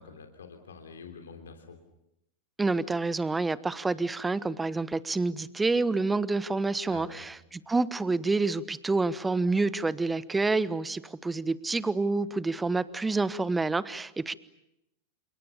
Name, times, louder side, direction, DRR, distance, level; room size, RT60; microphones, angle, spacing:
voice 1, 0.0-1.8 6.9-7.2, left 5 dB, 65° left, 5 dB, 3.2 m, -46 dB
voice 2, 2.6-14.3, right 3 dB, 10° right, 17 dB, 1.2 m, -28 dB
29.5 x 28.0 x 6.9 m, 0.84 s
figure-of-eight pair, 90°, 0 cm